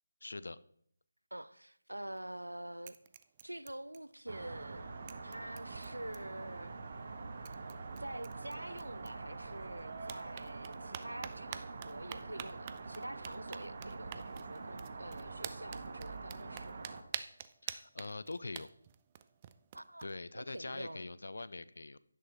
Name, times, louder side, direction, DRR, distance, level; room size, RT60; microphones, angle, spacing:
voice 1, 0.2-0.6 17.6-18.7 20.0-22.0, left 3 dB, 65° left, 0.5 m, -43 dB
voice 2, 1.3-3.0 3.4-6.7 8.0-16.8 19.7-20.1 20.3-21.1, right 1 dB, 90° right, 0.5 m, -46 dB
sound 1, 2.0-2.5 2.8-4.4 4.7-4.8 5.1-6.5 7.1-7.2 7.5-9.6 10.0-20.1, right 9 dB, 25° right, 0.4 m, -49 dB
sound 2, 4.3-17.0, right 3 dB, 45° right, 1.2 m, -45 dB
11.0 x 10.0 x 3.3 m
figure-of-eight pair, 155°, 0 cm